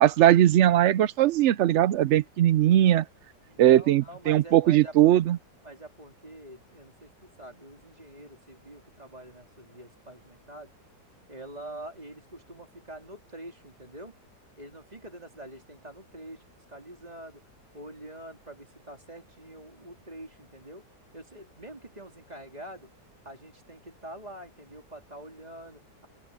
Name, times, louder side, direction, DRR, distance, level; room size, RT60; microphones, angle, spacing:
voice 1, 0.0-3.0 3.6-5.4, right 12 dB, 70° right, 0.7 m, -20 dB
voice 2, 3.5-5.1 5.6-10.7 11.3-14.2 14.6-16.4 16.7-17.4 17.7-20.9 21.1-22.9 23.2-26.1, right 1 dB, 25° right, 3.6 m, -45 dB
open air
omnidirectional pair, 1.7 m